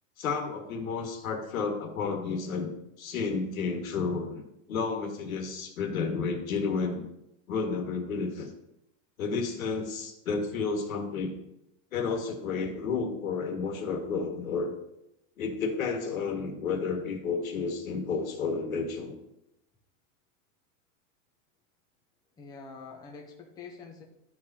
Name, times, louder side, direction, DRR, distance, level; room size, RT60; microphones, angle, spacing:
voice 1, 0.2-2.7 3.0-4.4 4.7-7.0 7.5-8.5 9.2-11.3 11.9-14.7 15.4-19.1, left 4 dB, 85° left, 3 dB, 2.0 m, -31 dB
voice 2, 22.4-24.0, left 4 dB, 10° left, 0 dB, 0.7 m, -45 dB
12.5 x 5.0 x 2.8 m, 0.84 s
supercardioid pair, 155°, 40 cm